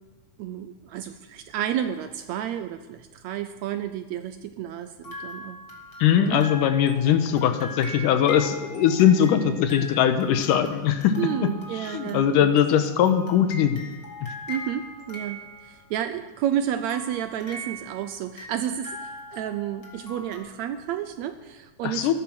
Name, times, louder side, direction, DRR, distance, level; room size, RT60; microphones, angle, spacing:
voice 1, 0.4-5.6 6.2-6.4 11.2-12.5 13.1-13.2 14.5-22.1, right 10 dB, 80° right, 10 dB, 1.7 m, -31 dB
sound 1, 5.0-16.1 16.9-20.4, left 1 dB, 30° left, 2.2 m, -41 dB
voice 2, 6.0-11.1 11.8-13.8 21.8-22.1, left 9 dB, 85° left, 9 dB, 2.6 m, -21 dB
14.0 x 12.0 x 6.1 m, 1.3 s
omnidirectional pair, 3.6 m